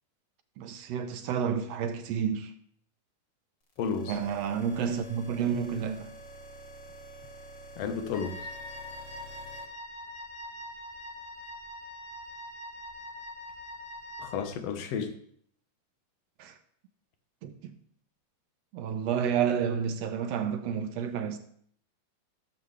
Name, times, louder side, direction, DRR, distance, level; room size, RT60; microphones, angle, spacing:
voice 1, 0.6-2.5 4.1-6.1 16.4-16.6 17.4-17.8 18.7-21.4, right 7 dB, 70° right, 1.8 m, -30 dB
sound 1, 3.7-9.6, right 1 dB, 35° left, 1.5 m, -48 dB
voice 2, 3.8-4.2 7.8-8.5 14.2-15.2, left 6 dB, 65° left, 2.0 m, -32 dB
Wind instrument woodwind instrument, 8.1-14.5, left 1 dB, 85° left, 2.9 m, -43 dB
15.5 x 7.3 x 3.3 m
omnidirectional pair, 3.3 m